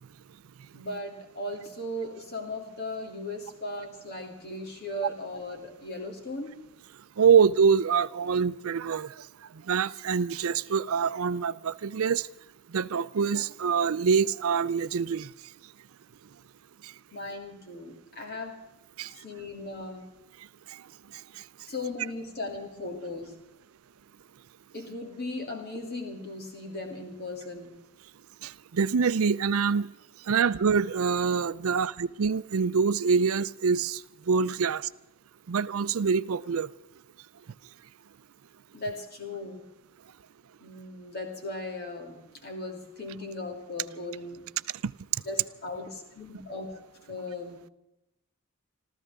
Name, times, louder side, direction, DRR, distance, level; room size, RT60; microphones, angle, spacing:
voice 1, 0.7-6.6 17.1-18.6 19.1-20.1 21.7-23.4 24.7-27.8 38.7-39.6 40.6-44.5 45.2-46.8 47.1-47.6, left 2 dB, 45° left, 2.8 m, -37 dB
voice 2, 7.2-9.3 9.7-12.3 12.7-15.3 16.8-16.9 19.0-19.1 20.7-20.8 28.4-29.9 30.3-34.9 35.5-36.7 44.8-44.9, right 6 dB, 75° right, 0.5 m, -25 dB
26.5 x 14.5 x 3.6 m
head